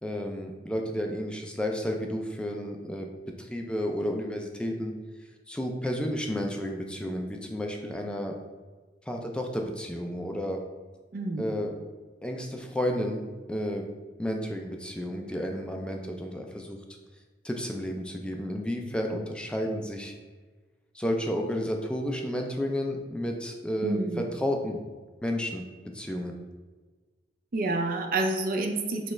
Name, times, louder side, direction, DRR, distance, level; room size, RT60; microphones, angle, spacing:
voice 1, 0.0-3.1 3.4-4.9 5.5-8.4 9.1-10.6 11.4-11.7 12.2-13.9 14.2-16.8 17.4-20.2 20.9-24.8 25.2-25.7 25.9-26.4, equal, 5° left, 2 dB, 0.3 m, -31 dB
voice 2, 11.1-11.5 23.8-24.3 27.5-29.1, right 2 dB, 55° right, 4 dB, 0.5 m, -29 dB
6.1 x 2.3 x 3.2 m, 1.3 s
head